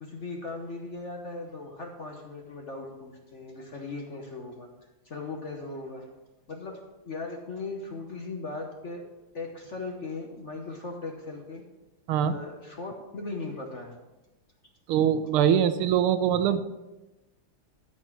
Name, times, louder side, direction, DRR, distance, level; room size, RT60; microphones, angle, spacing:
voice 1, 0.0-4.7 5.0-6.1 6.5-9.0 9.3-11.6 12.2-14.0, left 3 dB, 45° left, 2 dB, 1.0 m, -38 dB
voice 2, 14.9-16.6, right 9 dB, 85° right, 11 dB, 1.6 m, -23 dB
12.5 x 4.3 x 7.2 m, 1.0 s
omnidirectional pair, 2.3 m